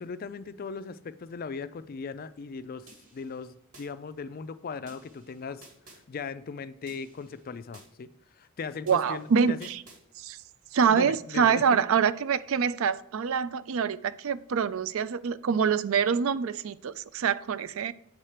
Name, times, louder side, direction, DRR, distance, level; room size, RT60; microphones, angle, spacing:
voice 1, 0.0-8.1 8.3-9.7 10.9-11.8, left 5 dB, 40° left, 13 dB, 0.3 m, -38 dB
sound 1, 2.9-3.9 4.9-6.0 6.9-7.9 8.9-10.0, right 2 dB, 80° right, 2.5 m, -54 dB
voice 2, 8.9-9.8 10.2-10.4 10.7-17.9, right 6 dB, 65° right, 16 dB, 0.4 m, -25 dB
8.0 x 4.4 x 4.9 m, 0.81 s
head